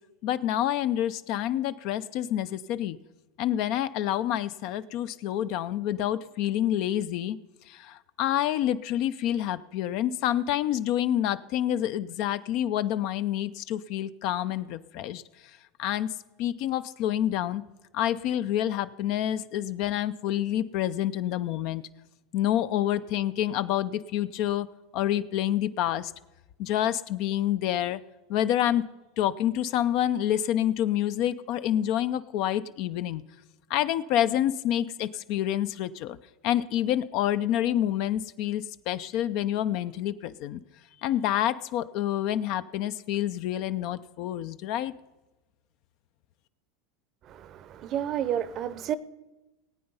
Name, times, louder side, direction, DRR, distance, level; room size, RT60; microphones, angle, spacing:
voice 1, 0.2-3.0 3.4-7.4 7.7-15.2 15.8-16.1 16.4-17.6 17.9-21.8 22.3-24.7 24.9-26.1 26.6-28.0 28.3-28.9 29.2-33.2 33.7-36.2 36.4-40.6 41.0-44.9, left 11 dB, 60° left, 0.5 m, -28 dB
voice 2, 47.2-49.0, right 10 dB, 45° right, 0.7 m, -31 dB
18.5 x 8.7 x 5.5 m
supercardioid pair, 115°, 0 cm